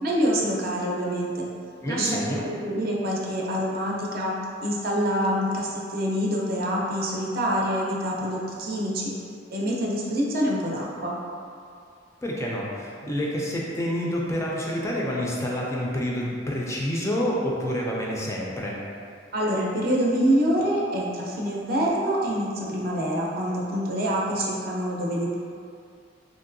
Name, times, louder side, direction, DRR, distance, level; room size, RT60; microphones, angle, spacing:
voice 1, 0.0-1.5 1.9-4.3 4.6-9.1 9.5-11.1 19.3-25.4, equal, 55° right, -3 dB, 0.5 m, -26 dB
voice 2, 1.8-2.4 12.2-18.8, equal, 15° left, -3 dB, 0.3 m, -28 dB
3.0 x 2.6 x 2.5 m, 2.4 s
head